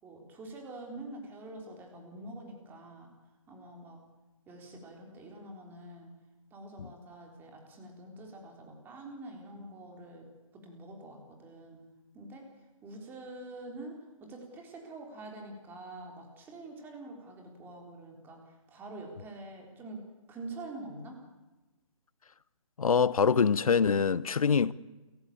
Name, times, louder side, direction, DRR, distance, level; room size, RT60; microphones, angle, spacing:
voice 1, 0.0-3.1 3.5-4.0 4.5-6.1 6.5-10.3 10.5-11.8 12.1-12.4 12.8-20.0 20.3-21.2, right 2 dB, 10° right, 3.9 m, -46 dB
voice 2, 22.8-24.7, left 6 dB, 80° left, 1.0 m, -25 dB
29.5 x 15.5 x 8.7 m
hypercardioid pair, 160°, 18 cm